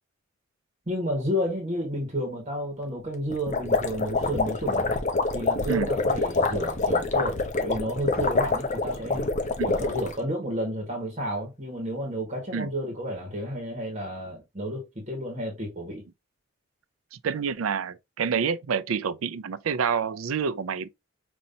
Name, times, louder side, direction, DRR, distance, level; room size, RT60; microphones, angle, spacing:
voice 1, 0.9-4.9 5.3-9.3 9.6-16.1, equal, 35° right, 1.5 m, -31 dB
sound 1, 3.3-10.1, left 3 dB, 35° left, 0.7 m, -26 dB
voice 2, 17.1-20.9, right 6 dB, 85° right, 0.4 m, -28 dB
5.3 x 2.9 x 2.7 m
head